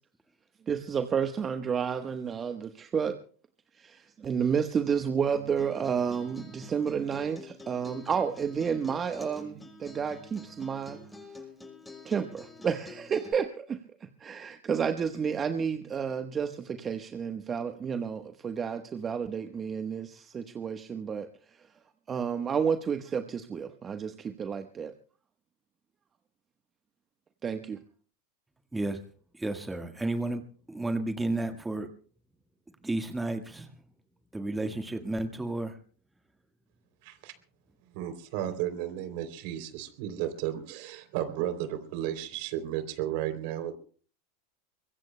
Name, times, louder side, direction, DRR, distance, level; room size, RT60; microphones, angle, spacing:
voice 1, 0.7-3.2 3.8-11.0 12.0-13.8 14.2-21.7 22.1-24.9 27.4-27.8, right 7 dB, 25° right, 1.1 m, -31 dB
Acoustic guitar, 5.3-13.3, left 2 dB, 10° left, 6.7 m, -48 dB
voice 2, 28.7-29.0 29.3-30.4 30.7-31.9 32.8-33.8 34.3-35.8, right 2 dB, 10° right, 1.5 m, -32 dB
voice 3, 37.0-37.3 37.9-43.7, right 12 dB, 60° right, 3.1 m, -33 dB
24.0 x 22.0 x 2.2 m
hypercardioid pair, 105°, 0 cm